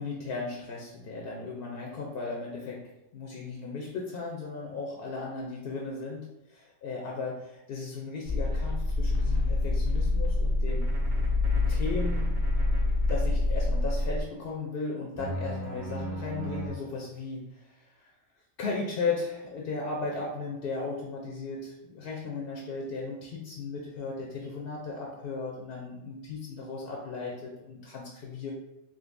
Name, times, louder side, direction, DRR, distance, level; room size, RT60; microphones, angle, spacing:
voice 1, 0.0-10.9 11.7-12.4 13.0-18.1 18.6-28.5, left 4 dB, 60° left, -2 dB, 0.6 m, -36 dB
sound 1, 8.3-14.2, left 2 dB, 50° right, 0.5 m, -26 dB
sound 2, 10.7-13.1 15.2-16.7, right 2 dB, 25° right, 1.0 m, -38 dB
3.7 x 2.5 x 2.5 m, 0.92 s
omnidirectional pair, 1.4 m